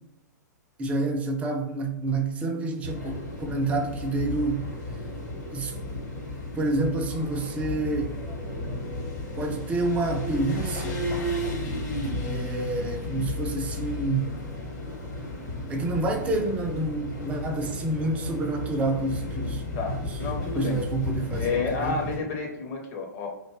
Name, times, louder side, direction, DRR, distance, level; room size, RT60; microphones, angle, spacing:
voice 1, 0.8-4.7 5.5-5.7 6.6-8.2 9.4-11.1 12.3-14.5 15.7-19.7 20.6-21.5 21.8-22.0, right 2 dB, 15° right, 0.3 m, -28 dB
sound 1, 2.8-22.2, left 1 dB, 60° left, 1.0 m, -33 dB
voice 2, 19.7-20.8 21.4-23.3, left 4 dB, 40° left, 0.6 m, -30 dB
2.5 x 2.2 x 3.0 m
figure-of-eight pair, 105°, 10 cm